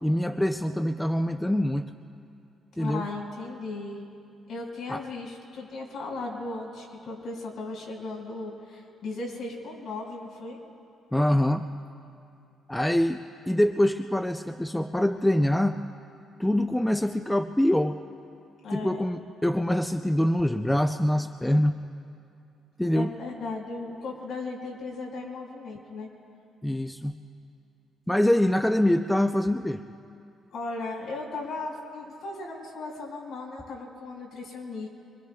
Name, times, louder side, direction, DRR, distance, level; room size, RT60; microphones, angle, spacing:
voice 1, 0.0-1.9 2.8-3.0 4.9-5.0 11.1-11.7 12.7-13.2 13.5-15.8 16.4-18.0 18.7-21.8 22.8-23.1 26.6-27.1 28.1-29.8, left 1 dB, 5° left, 7 dB, 0.4 m, -24 dB
voice 2, 2.8-4.1 4.5-10.6 18.6-19.0 22.9-26.1 30.5-34.9, left 3 dB, 55° left, -2 dB, 4.5 m, -36 dB
25.0 x 25.0 x 2.3 m, 2.5 s
cardioid pair, 125°, 0 cm